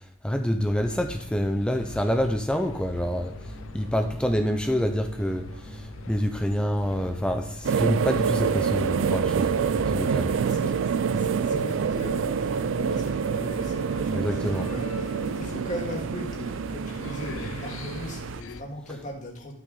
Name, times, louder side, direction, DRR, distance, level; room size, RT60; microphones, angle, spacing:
voice 1, 0.2-3.3 3.7-10.3 11.1-11.3 14.1-14.7, equal, 5° left, 5 dB, 0.6 m, -27 dB
sound 1, 0.6-18.6, left 3 dB, 70° left, 0.6 m, -42 dB
sound 2, 2.9-9.8, right 1 dB, 85° right, 1.5 m, -44 dB
sound 3, 7.6-18.4, right 6 dB, 65° right, 0.3 m, -27 dB
voice 2, 10.2-19.5, left 1 dB, 35° left, -1 dB, 2.2 m, -39 dB
12.0 x 6.4 x 4.0 m, 0.63 s
head